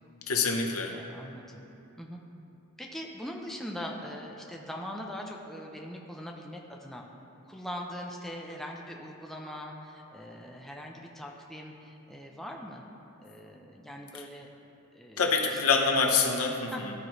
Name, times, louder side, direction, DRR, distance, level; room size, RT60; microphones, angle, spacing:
voice 1, 0.3-1.0 15.2-16.9, left 4 dB, 85° left, 2 dB, 0.8 m, -26 dB
voice 2, 0.8-1.6 2.0-2.2 2.8-7.0 7.5-12.8 13.2-14.5 14.9-15.6 16.7-16.8, equal, ahead, -1 dB, 0.5 m, -41 dB
13.5 x 4.6 x 3.1 m, 2.8 s
head